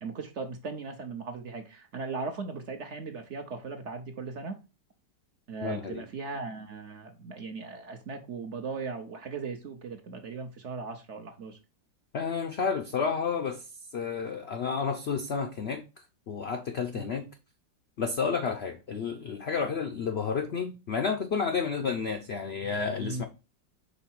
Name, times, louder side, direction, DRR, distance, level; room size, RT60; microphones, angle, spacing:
voice 1, 0.0-4.6 5.5-11.6 16.9-17.1 19.6-19.7 23.0-23.3, right 4 dB, 55° right, 0.8 m, -38 dB
voice 2, 5.6-6.0 12.1-13.7 13.9-15.8 16.3-17.3 18.0-23.2, left 5 dB, 70° left, 0.6 m, -31 dB
5.5 x 4.0 x 4.3 m
omnidirectional pair, 1.9 m